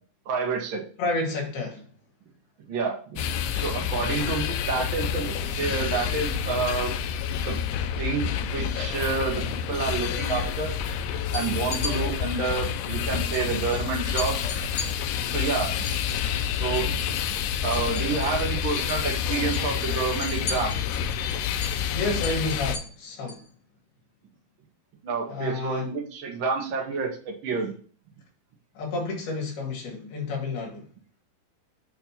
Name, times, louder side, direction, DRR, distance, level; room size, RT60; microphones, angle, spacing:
voice 1, 0.2-0.8 2.7-3.2 3.5-6.9 7.3-7.6 8.0-10.7 11.3-14.4 15.3-15.8 16.5-17.0 17.6-20.7 25.0-27.7, right 5 dB, 85° right, 1.1 m, -29 dB
voice 2, 1.0-1.9 21.9-23.5 25.3-25.9 28.8-30.9, left 3 dB, 75° left, 3.7 m, -30 dB
sound 1, 3.2-22.8, left 8 dB, 90° left, 2.7 m, -28 dB
sound 2, 11.3-11.9 13.3-13.4 13.7-13.8 14.2-16.9 17.2-18.4 18.7-19.0 19.3-23.5, left 3 dB, 50° left, 2.8 m, -37 dB
8.8 x 3.0 x 5.7 m
omnidirectional pair, 4.6 m